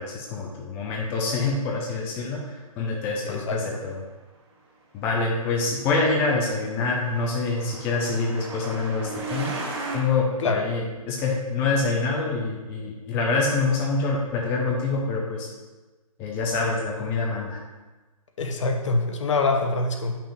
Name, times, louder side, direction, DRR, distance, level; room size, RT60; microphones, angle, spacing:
voice 1, 0.0-4.0 4.9-9.5 9.9-15.5 16.2-17.6, left 3 dB, 10° left, -2 dB, 0.4 m, -26 dB
voice 2, 3.3-3.8 10.4-10.7 18.4-20.2, left 3 dB, 55° left, 3 dB, 0.9 m, -25 dB
Truck, 5.8-10.0, right 3 dB, 45° right, 2.0 m, -36 dB
8.5 x 5.7 x 2.5 m, 1.2 s
hypercardioid pair, 150°, 19 cm